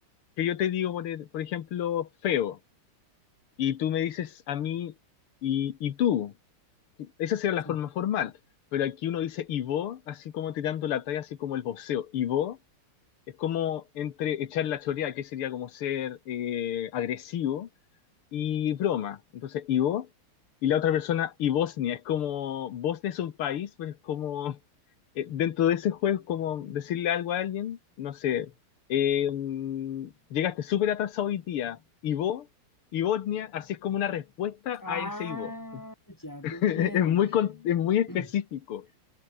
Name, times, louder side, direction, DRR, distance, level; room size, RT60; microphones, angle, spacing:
voice 1, 0.4-2.6 3.6-4.9 5.4-6.3 7.0-8.3 8.7-12.6 13.4-17.7 18.3-20.1 20.6-24.6 25.2-28.5 28.9-32.5 32.9-35.5 36.4-38.9, left 10 dB, 90° left, 2.2 m, -29 dB
voice 2, 34.8-37.2 38.1-38.3, left 1 dB, 10° left, 6.0 m, -38 dB
omnidirectional pair, 2.3 m